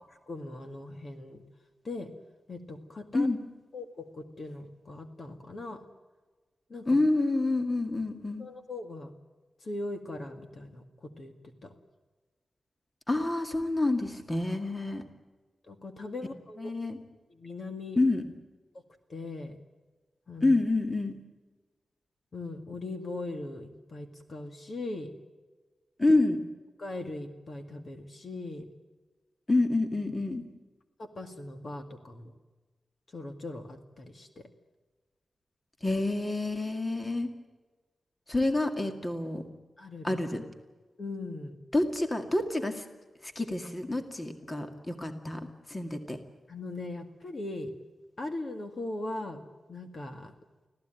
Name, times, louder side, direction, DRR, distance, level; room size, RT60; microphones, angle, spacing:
voice 1, 0.0-1.4 1.8-2.1 2.5-3.3 3.7-5.8 6.7-7.0 8.4-9.1 9.6-11.3 11.6-11.7 15.7-16.7 17.3-18.0 19.1-19.6 20.3-20.5 22.3-25.1 26.8-28.7 31.0-32.4 33.1-34.5 39.8-40.2 41.0-41.6 46.5-47.7 48.2-49.4 49.7-50.3, left 2 dB, 45° left, 6 dB, 2.0 m, -39 dB
voice 2, 6.9-8.5 13.1-15.0 16.6-17.0 18.0-18.3 20.4-21.2 26.0-26.4 29.5-30.4 35.8-37.3 38.3-39.4 40.0-40.4 41.7-42.8 43.2-46.2, left 2 dB, 20° left, 6 dB, 2.1 m, -28 dB
25.5 x 16.5 x 9.2 m, 1.3 s
wide cardioid pair, 160°, 0 cm